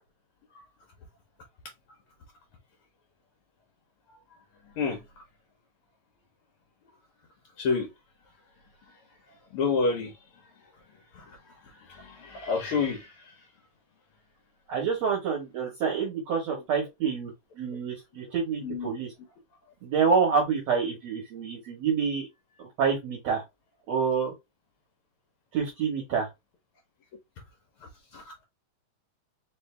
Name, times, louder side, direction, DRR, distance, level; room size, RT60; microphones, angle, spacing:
voice 1, 7.6-7.9 9.5-10.1 11.1-11.4 11.7-13.3 18.6-18.9 28.1-28.4, left 4 dB, 70° left, 1.3 m, -29 dB
voice 2, 14.7-17.3 17.6-19.1 19.8-22.3 22.8-23.4 23.9-24.3 25.5-26.3, right 6 dB, 60° right, 2.2 m, -27 dB
4.9 x 2.7 x 3.3 m
omnidirectional pair, 3.7 m